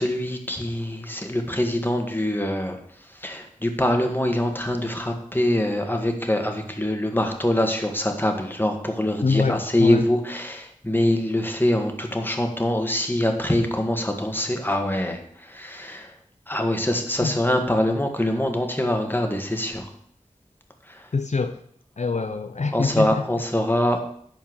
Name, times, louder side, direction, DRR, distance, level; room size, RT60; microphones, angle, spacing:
voice 1, 0.0-16.1 16.5-19.9 20.8-21.1 22.7-24.0, left 1 dB, 15° left, 4 dB, 1.7 m, -24 dB
voice 2, 9.2-10.1 17.2-17.3 21.1-21.6 22.0-23.2, left 4 dB, 60° left, 7 dB, 0.6 m, -24 dB
11.5 x 4.5 x 7.8 m, 0.66 s
wide cardioid pair, 50°, 13 cm